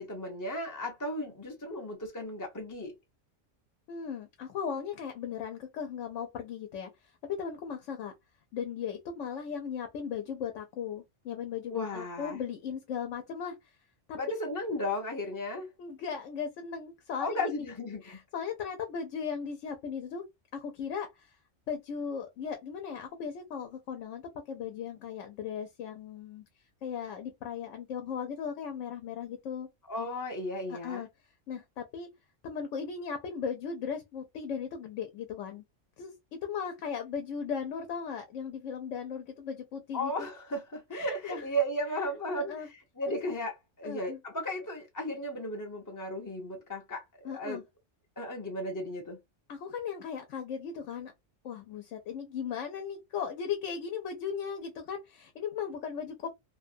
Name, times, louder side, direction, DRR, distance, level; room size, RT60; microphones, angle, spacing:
voice 1, 0.0-3.0 11.7-12.4 14.1-15.7 17.2-18.2 29.9-31.0 39.9-42.5 43.0-47.6 48.2-49.2, equal, 20° left, 0.5 m, -35 dB
voice 2, 3.9-6.9 7.2-8.1 8.5-13.7 14.1-14.2 15.8-17.7 18.0-20.2 20.5-21.4 21.7-24.2 24.5-26.4 26.8-29.7 30.7-31.1 31.5-32.1 32.4-35.6 36.0-36.1 36.4-40.3 40.9-41.4 42.3-42.7 43.1-43.2 43.8-44.2 47.2-47.6 49.5-51.1 51.4-56.3, left 7 dB, 80° left, 1.0 m, -37 dB
2.8 x 2.2 x 2.5 m
omnidirectional pair, 1.3 m